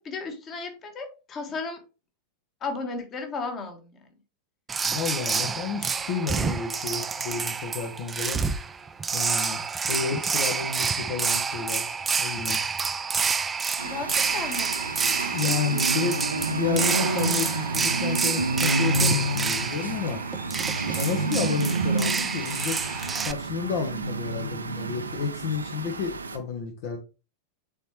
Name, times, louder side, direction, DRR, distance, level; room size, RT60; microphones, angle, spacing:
voice 1, 0.0-1.8 2.6-4.1 13.8-14.7 15.5-15.6, left 4 dB, 25° left, 1.6 m, -34 dB
sound 1, 4.7-23.3, right 5 dB, 15° right, 0.5 m, -28 dB
voice 2, 4.9-8.4 9.1-9.6 9.9-11.9 12.2-12.6 15.3-20.2 20.9-22.8 23.2-27.0, left 6 dB, 50° left, 1.1 m, -31 dB
sound 2, 13.8-26.4, right 2 dB, 75° right, 0.7 m, -29 dB
9.2 x 4.3 x 3.1 m
figure-of-eight pair, 90°, 0 cm